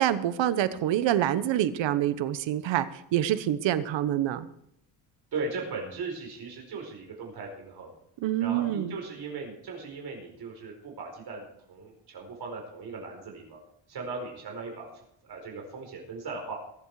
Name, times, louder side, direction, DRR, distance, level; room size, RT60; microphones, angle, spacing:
voice 1, 0.0-4.5 8.2-8.9, right 12 dB, 80° right, 13 dB, 1.2 m, -26 dB
voice 2, 5.3-8.0 8.4-13.6 13.9-16.6, right 4 dB, 60° right, 1 dB, 4.8 m, -38 dB
21.5 x 8.2 x 4.9 m, 0.75 s
cardioid pair, 120°, 44 cm